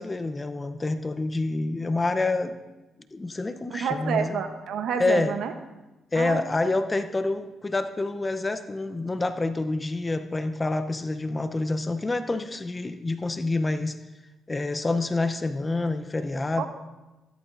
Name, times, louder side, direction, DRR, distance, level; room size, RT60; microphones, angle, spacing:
voice 1, 0.0-2.6 3.1-4.3 5.0-5.4 6.1-14.0 14.5-16.7, left 2 dB, 25° left, 10 dB, 0.7 m, -27 dB
voice 2, 3.7-5.5 6.1-6.4 16.6-16.7, right 7 dB, 75° right, 8 dB, 0.9 m, -29 dB
13.5 x 12.5 x 2.6 m, 1.1 s
cardioid pair, 70°, 0 cm